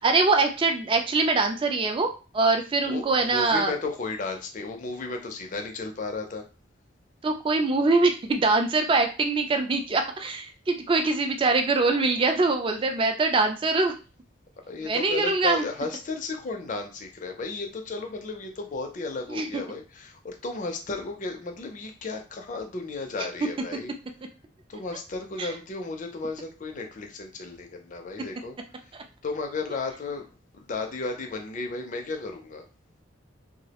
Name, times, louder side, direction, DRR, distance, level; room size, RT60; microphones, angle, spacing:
voice 1, 0.0-2.1 2.3-3.7 7.2-13.9 14.9-15.6 19.3-19.5 25.4-25.5, right 3 dB, 25° right, 5 dB, 0.3 m, -23 dB
voice 2, 2.8-6.4 14.7-23.9 24.7-29.0 29.2-30.2 30.5-32.7, left 3 dB, 40° left, 4 dB, 0.4 m, -34 dB
2.3 x 2.0 x 2.8 m, 0.33 s
head